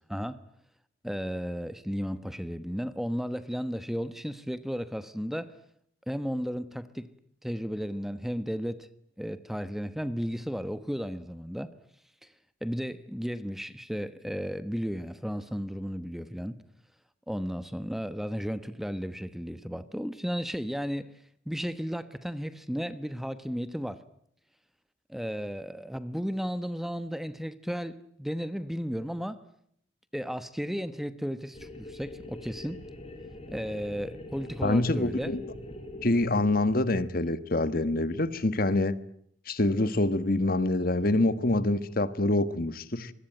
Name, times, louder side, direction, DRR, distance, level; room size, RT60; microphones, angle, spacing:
voice 1, 1.0-5.5 6.1-7.1 7.4-8.9 9.2-11.7 12.2-12.3 12.6-16.5 17.3-21.1 21.5-24.0 25.1-29.4 30.1-32.8 33.5-35.3, equal, ahead, 1.1 m, -34 dB
sound 1, 31.5-37.3, left 1 dB, 35° left, 4.4 m, -44 dB
voice 2, 34.6-35.4 36.0-39.0 39.5-43.1, left 2 dB, 50° left, 1.4 m, -26 dB
25.5 x 22.0 x 9.1 m
head